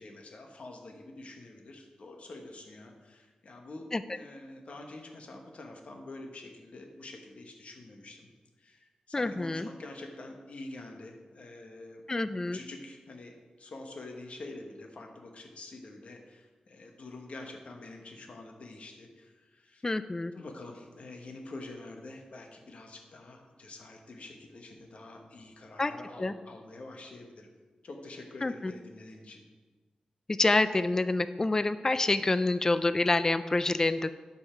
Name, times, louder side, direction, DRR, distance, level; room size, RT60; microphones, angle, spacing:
voice 1, 0.0-8.3 8.6-12.0 12.5-19.8 20.3-27.5 27.8-29.4, left 2 dB, 60° left, 3 dB, 1.2 m, -46 dB
voice 2, 9.1-9.7 12.1-12.6 19.8-20.3 25.8-25.9 26.2-26.3 28.4-28.7 30.4-34.1, left 2 dB, 25° left, 12 dB, 0.3 m, -27 dB
11.5 x 5.6 x 4.4 m, 1.3 s
wide cardioid pair, 105°, 2 cm